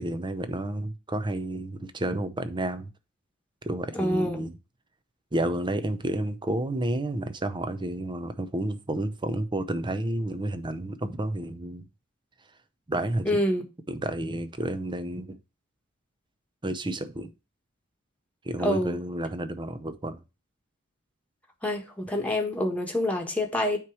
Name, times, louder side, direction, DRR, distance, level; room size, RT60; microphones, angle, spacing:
voice 1, 0.0-2.9 3.6-4.5 5.3-11.8 12.9-13.4 13.9-15.4 16.6-17.3 18.4-20.2, right 1 dB, 20° right, 0.7 m, -30 dB
voice 2, 3.9-4.4 13.2-13.6 18.6-19.0 21.6-23.8, left 1 dB, 5° left, 1.4 m, -26 dB
9.1 x 3.1 x 4.7 m
head